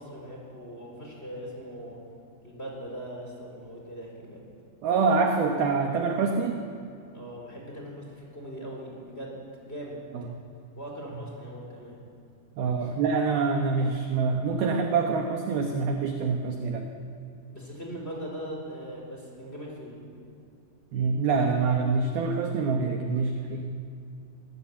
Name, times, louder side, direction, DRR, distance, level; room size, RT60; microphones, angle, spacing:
voice 1, 0.0-2.0 2.4-4.4 7.1-10.0 10.7-12.0 12.8-13.0 17.5-20.0, equal, 15° left, -2 dB, 4.1 m, -40 dB
voice 2, 4.8-6.6 10.1-10.4 12.6-16.9 20.9-23.8, right 4 dB, 75° right, 3 dB, 2.3 m, -26 dB
24.5 x 17.0 x 8.4 m, 2.4 s
omnidirectional pair, 6.0 m